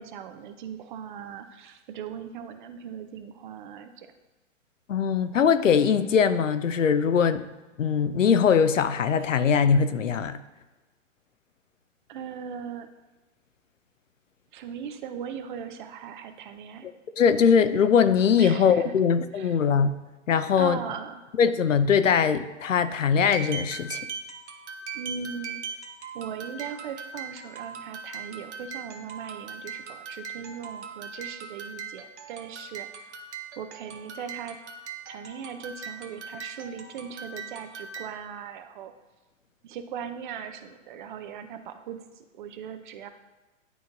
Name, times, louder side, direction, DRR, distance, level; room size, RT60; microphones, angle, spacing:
voice 1, 0.0-4.1 12.1-12.9 14.5-16.9 18.3-19.0 19.3-19.6 20.6-21.2 24.9-25.8 26.1-33.2 33.6-34.6 35.1-38.9 39.6-43.1, right 7 dB, 40° right, 9 dB, 0.6 m, -39 dB
voice 2, 4.9-7.4 7.8-10.4 17.2-19.9 20.3-20.8 21.4-24.1, left 7 dB, 85° left, 11 dB, 0.6 m, -21 dB
sound 1, 23.3-38.3, right 5 dB, 65° right, 0.9 m, -40 dB
11.0 x 3.8 x 2.6 m, 1.1 s
figure-of-eight pair, 115°, 37 cm